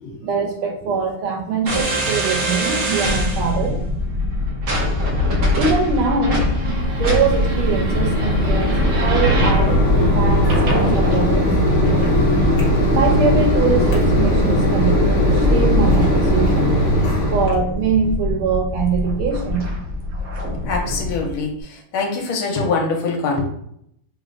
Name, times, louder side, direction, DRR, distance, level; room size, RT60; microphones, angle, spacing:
voice 1, 0.2-3.8 5.6-6.6 7.0-11.6 11.9-12.6 12.9-16.8 17.3-19.7, right 5 dB, 85° right, 1 dB, 1.5 m, -23 dB
sound 1, 1.7-21.4, left 1 dB, 60° right, 0.9 m, -22 dB
Mechanisms, 6.6-17.6, equal, 45° left, 0.9 m, -19 dB
voice 2, 20.6-23.4, left 4 dB, 75° left, 2 dB, 1.5 m, -23 dB
3.7 x 3.0 x 2.5 m, 0.71 s
omnidirectional pair, 2.4 m